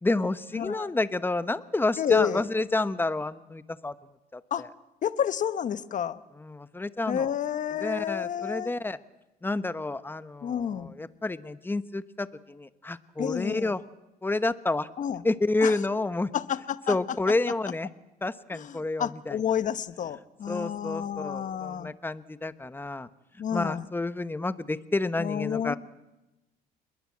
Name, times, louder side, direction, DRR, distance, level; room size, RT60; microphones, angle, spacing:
voice 1, 0.0-3.9 4.3-4.7 6.4-7.3 7.8-9.0 9.4-13.8 14.2-14.9 15.2-16.3 16.9-17.9 18.2-19.4 20.5-23.1 23.5-25.8, left 2 dB, 10° left, 13 dB, 1.1 m, -29 dB
voice 2, 0.5-0.9 2.0-2.4 4.5-4.7 5.0-6.2 7.1-8.7 10.4-10.9 13.2-13.7 15.0-15.2 15.6-15.8 16.3-17.0 18.5-22.0 23.4-23.9 25.2-25.8, left 9 dB, 50° left, 13 dB, 1.2 m, -30 dB
28.5 x 21.5 x 8.6 m, 1.0 s
cardioid pair, 110°, 17 cm